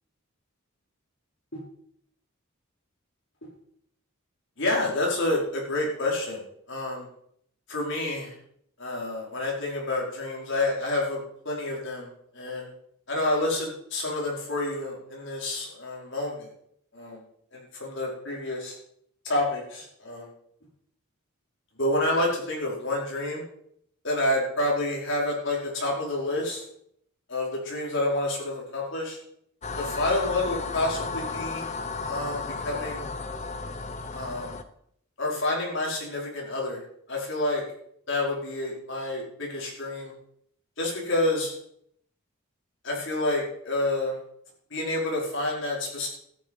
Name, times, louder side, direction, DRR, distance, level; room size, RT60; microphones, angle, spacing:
voice 1, 4.6-6.4 6.7-7.1 7.7-8.3 8.8-12.1 12.3-12.7 13.1-16.5 16.9-17.2 17.5-18.8 19.2-20.3 21.8-23.4 24.0-26.6 27.3-29.2 29.8-31.7 32.0-33.1 34.1-34.6 35.2-36.8 37.1-37.6 38.1-40.1 40.8-41.5 42.8-44.2 44.7-46.1, left 2 dB, 55° left, -2 dB, 5.0 m, -28 dB
sound 1, 29.6-34.6, left 4 dB, 30° left, 0.9 m, -34 dB
13.5 x 9.7 x 5.6 m, 0.69 s
head